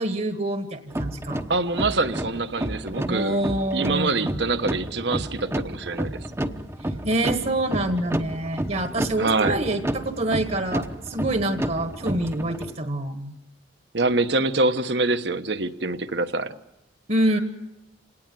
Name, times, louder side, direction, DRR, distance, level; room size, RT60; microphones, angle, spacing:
voice 1, 0.0-1.4 3.1-4.3 6.8-13.4 17.1-17.4, right 1 dB, 45° right, 7 dB, 1.5 m, -26 dB
sound 1, 0.9-12.7, right 1 dB, 15° right, 1.0 m, -31 dB
voice 2, 1.5-3.4 3.7-6.2 9.2-9.6 13.9-16.6, right 3 dB, 65° right, 10 dB, 1.2 m, -25 dB
27.5 x 19.0 x 7.7 m, 0.91 s
head